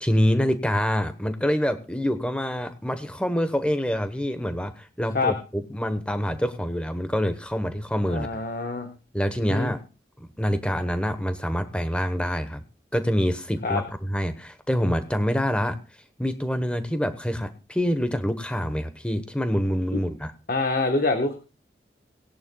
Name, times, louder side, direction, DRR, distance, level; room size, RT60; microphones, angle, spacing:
voice 1, 0.0-8.3 9.1-9.8 10.2-12.6 12.9-15.8 16.2-20.3, equal, 5° left, 9 dB, 1.0 m, -26 dB
voice 2, 8.1-8.9 9.5-9.7 13.6-13.8 19.9-20.0 20.5-21.3, left 3 dB, 50° left, 5 dB, 1.2 m, -25 dB
19.0 x 11.0 x 2.3 m, 0.33 s
head